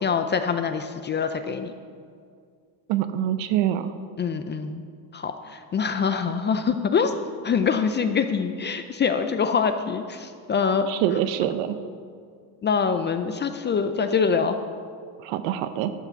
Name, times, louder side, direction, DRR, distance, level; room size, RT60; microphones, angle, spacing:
voice 1, 0.0-1.7 4.2-4.8 5.1-7.1 7.4-10.9 12.6-14.6, left 6 dB, 25° left, 8 dB, 0.5 m, -24 dB
voice 2, 2.9-3.9 10.9-11.8 15.2-15.9, right 11 dB, 75° right, 11 dB, 0.7 m, -25 dB
12.0 x 5.7 x 6.9 m, 2.2 s
supercardioid pair, 110°, 45 cm